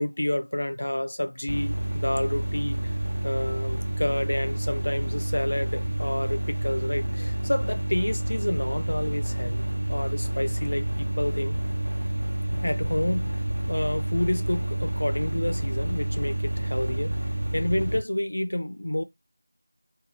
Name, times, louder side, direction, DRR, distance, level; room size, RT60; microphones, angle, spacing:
voice 1, 0.0-2.9 3.2-11.6 12.5-13.3 13.7-17.2 17.5-19.0, left 1 dB, 55° left, 0.4 m, -29 dB
sound 1, 1.5-18.0, right 1 dB, 75° right, 1.0 m, -29 dB
2.5 x 2.2 x 3.2 m
figure-of-eight pair, 175°, 0 cm